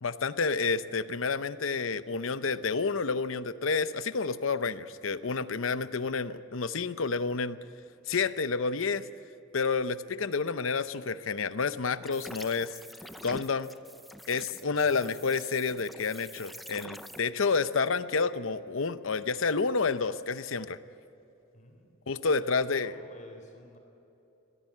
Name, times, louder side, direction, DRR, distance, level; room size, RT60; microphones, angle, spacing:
voice 1, 0.0-7.6 8.1-9.1 9.5-12.7 13.2-13.7 14.3-20.8 22.1-22.9, left 4 dB, 75° left, 13 dB, 0.8 m, -29 dB
voice 2, 5.8-6.3 14.7-15.1 21.5-21.9 22.4-23.8, left 1 dB, 40° left, 3 dB, 3.6 m, -51 dB
sound 1, 12.0-17.2, equal, ahead, 0.5 m, -46 dB
23.0 x 15.5 x 8.6 m, 2.9 s
head